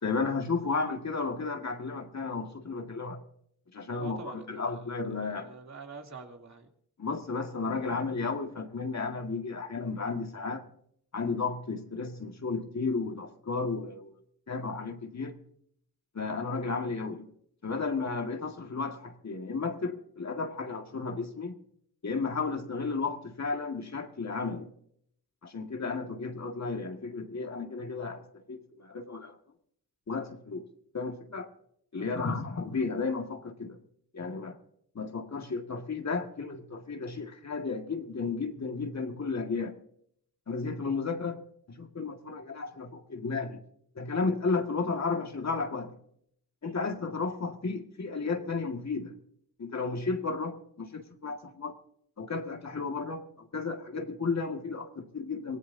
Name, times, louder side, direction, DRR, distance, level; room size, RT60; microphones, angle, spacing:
voice 1, 0.0-3.2 3.7-5.5 7.0-10.6 11.1-14.1 14.5-15.3 16.1-17.3 17.6-21.5 22.0-24.7 25.4-29.4 30.1-30.6 30.9-31.5 31.9-33.8 34.1-34.6 35.0-39.7 40.5-41.4 41.7-43.6 44.0-45.9 46.6-49.1 49.6-51.7 52.2-55.6, left 4 dB, 45° left, 4 dB, 2.0 m, -33 dB
voice 2, 3.9-4.6 5.2-6.7 31.9-32.3, right 4 dB, 45° right, 2 dB, 3.1 m, -45 dB
24.5 x 16.5 x 2.8 m, 0.69 s
cardioid pair, 55°, 39 cm